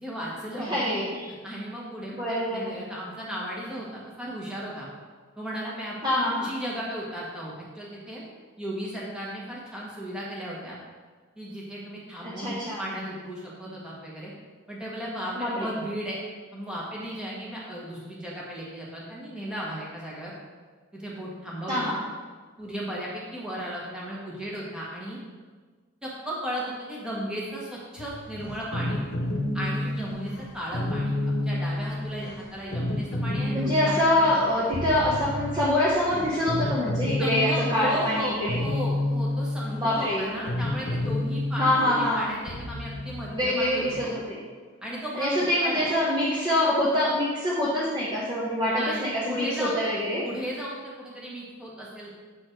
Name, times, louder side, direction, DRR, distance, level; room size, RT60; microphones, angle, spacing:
voice 1, 0.0-1.0 1.4-4.9 5.4-6.0 6.4-8.2 8.6-10.8 11.4-14.3 14.7-16.2 16.5-20.3 20.9-21.9 22.6-25.2 26.0-29.1 29.5-34.3 37.2-44.2 44.8-45.8 48.7-49.8 50.2-52.2, equal, 5° right, -5 dB, 1.5 m, -35 dB
voice 2, 0.6-1.3 2.1-2.8 6.0-6.5 12.2-12.8 15.4-15.7 21.7-22.0 33.5-38.6 39.7-40.3 41.6-42.3 43.3-44.4 45.2-50.3, left 1 dB, 20° right, -7 dB, 1.0 m, -25 dB
sound 1, 28.0-44.1, left 1 dB, 55° left, 1.0 m, -30 dB
7.7 x 4.2 x 4.6 m, 1.4 s
head